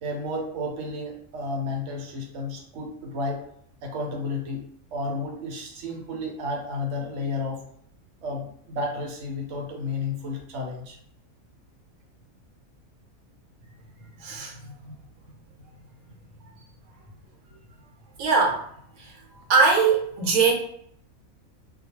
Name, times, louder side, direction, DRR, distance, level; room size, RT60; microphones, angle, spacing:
voice 1, 0.0-3.4 3.8-4.6 4.9-7.6 8.2-11.0, left 2 dB, 65° right, 0 dB, 0.9 m, -32 dB
voice 2, 14.2-14.9 18.2-18.6 19.0-19.2 19.5-20.5, right 4 dB, 85° right, 1 dB, 1.0 m, -22 dB
2.3 x 2.2 x 2.9 m, 0.66 s
omnidirectional pair, 1.4 m